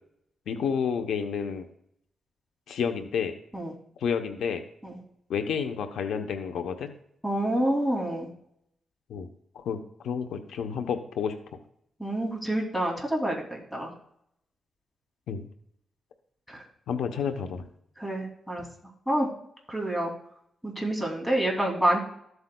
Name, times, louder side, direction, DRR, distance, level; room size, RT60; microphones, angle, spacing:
voice 1, 0.5-1.7 2.7-3.3 4.0-4.6 5.3-6.9 9.1-9.3 9.5-11.3 15.3-15.5 16.9-17.7, left 7 dB, 85° left, 7 dB, 0.7 m, -30 dB
voice 2, 7.2-8.3 12.0-13.9 16.5-16.6 18.0-18.6 19.1-19.3 19.7-20.1 20.6-22.0, right 1 dB, 5° left, -1 dB, 2.7 m, -27 dB
13.5 x 8.0 x 2.2 m, 0.72 s
cardioid pair, 95°, 0 cm